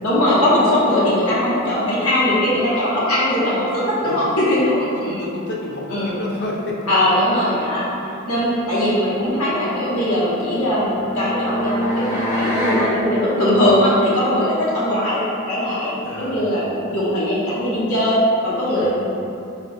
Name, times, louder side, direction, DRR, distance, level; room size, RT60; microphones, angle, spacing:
voice 1, 0.0-5.2 5.9-6.2 6.8-18.9, left 1 dB, 85° left, -8 dB, 1.2 m, -20 dB
voice 2, 4.0-6.8 16.0-16.4 18.7-18.9, left 2 dB, 50° left, -3 dB, 0.6 m, -30 dB
sound 1, 10.3-12.9, left 1 dB, 70° left, 1.4 m, -25 dB
4.2 x 3.8 x 2.6 m, 2.6 s
head